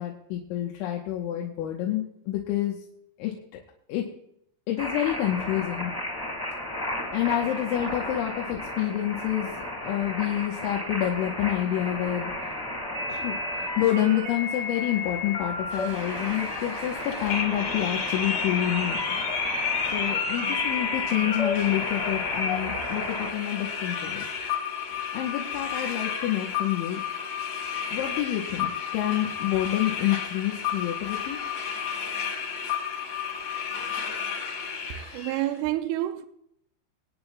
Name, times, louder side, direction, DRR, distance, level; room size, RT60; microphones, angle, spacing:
voice 1, 0.0-2.8 3.2-3.3 3.9-4.1 4.7-5.9 7.1-9.5 9.8-12.3 13.1-13.4 13.8-19.0 19.8-24.2 25.1-27.0 27.9-31.4, left 12 dB, 85° left, 3.4 m, -28 dB
sound 1, 4.8-23.3, left 1 dB, 15° left, 0.8 m, -33 dB
sound 2, 15.7-35.5, left 6 dB, 60° left, 1.9 m, -32 dB
voice 2, 35.1-36.2, right 14 dB, 85° right, 2.3 m, -28 dB
25.0 x 9.0 x 2.4 m
omnidirectional pair, 5.4 m